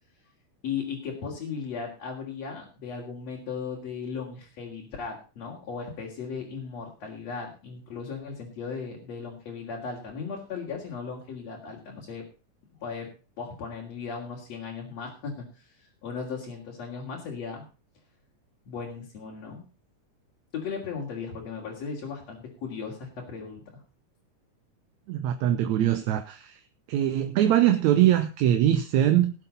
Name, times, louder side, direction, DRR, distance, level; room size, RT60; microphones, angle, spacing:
voice 1, 0.6-12.2 12.8-13.1 13.4-17.6 18.7-19.6 20.5-23.8, left 5 dB, 55° left, 3.9 m, -37 dB
voice 2, 25.1-26.6 26.9-29.3, right 12 dB, 70° right, 2.0 m, -22 dB
18.5 x 7.6 x 5.4 m
omnidirectional pair, 3.7 m